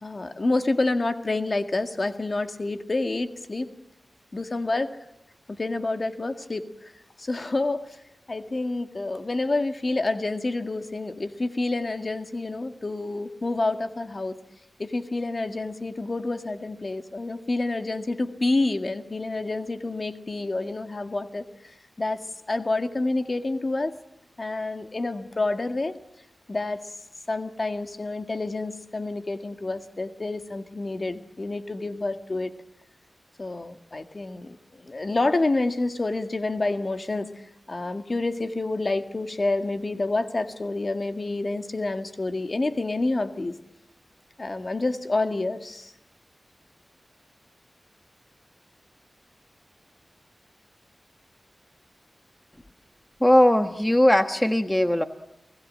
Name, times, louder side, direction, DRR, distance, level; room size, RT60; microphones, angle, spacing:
voice 1, 0.0-3.7 4.3-4.9 5.6-6.9 7.2-8.0 8.3-14.4 14.8-22.2 22.5-23.9 24.4-25.9 26.5-27.0 27.3-32.5 33.4-37.3 37.7-43.5 44.4-45.9, left 2 dB, 45° left, 7 dB, 1.8 m, -28 dB
voice 2, 53.2-55.0, left 1 dB, 15° left, 8 dB, 1.3 m, -19 dB
29.5 x 18.0 x 7.6 m, 0.89 s
cardioid pair, 55°, 0 cm